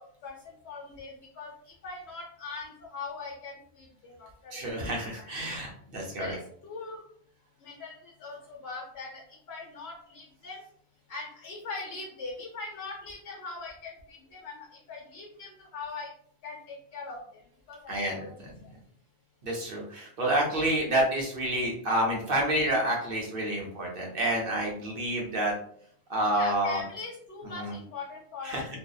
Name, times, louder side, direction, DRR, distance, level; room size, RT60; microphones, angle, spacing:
voice 1, 0.0-4.9 5.2-5.6 6.2-7.0 7.6-10.6 11.1-16.1 16.4-17.4 17.7-18.3 18.6-18.7 26.3-28.6, left 4 dB, 75° left, -2 dB, 0.9 m, -41 dB
voice 2, 4.5-6.4 17.9-18.5 19.4-25.5 26.1-26.8 27.5-27.7 28.4-28.7, right 1 dB, 60° right, -1 dB, 0.8 m, -29 dB
2.6 x 2.1 x 2.3 m, 0.63 s
omnidirectional pair, 1.1 m